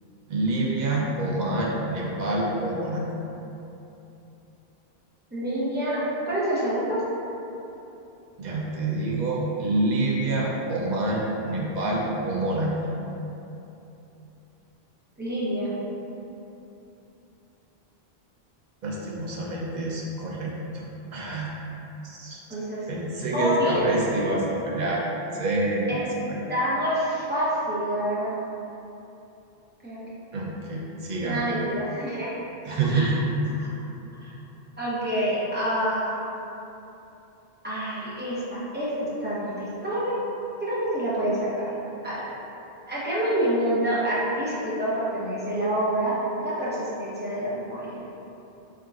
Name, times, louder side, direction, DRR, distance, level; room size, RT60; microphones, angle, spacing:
voice 1, 0.3-3.0 8.4-12.8 18.8-20.8 21.1-21.6 22.0-22.4 22.9-25.1 25.3-26.0 26.3-26.4 30.3-31.5 32.6-33.2, right 2 dB, 50° right, -4 dB, 0.7 m, -27 dB
voice 2, 5.3-7.0 15.2-15.7 22.5-22.9 23.3-23.9 25.9-26.1 26.5-28.4 29.8-30.1 31.2-32.3 32.9-33.1 33.6-33.7 34.2-34.3 34.8-36.1 37.6-40.2 40.6-41.6 42.0-42.2 42.9-47.9, right 1 dB, 10° right, -10 dB, 0.8 m, -27 dB
3.7 x 3.6 x 2.4 m, 2.9 s
omnidirectional pair, 1.1 m